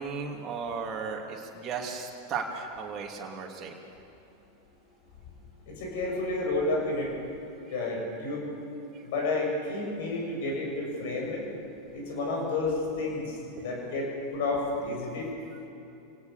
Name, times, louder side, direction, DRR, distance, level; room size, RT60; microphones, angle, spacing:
voice 1, 0.0-3.7 8.9-9.0, right 5 dB, 35° right, 0 dB, 3.1 m, -35 dB
voice 2, 5.7-7.1 7.7-8.4 9.0-11.4 11.9-13.4 13.6-15.3, left 2 dB, 60° left, 0 dB, 7.6 m, -30 dB
27.0 x 18.0 x 7.1 m, 2.9 s
figure-of-eight pair, 90°, 0 cm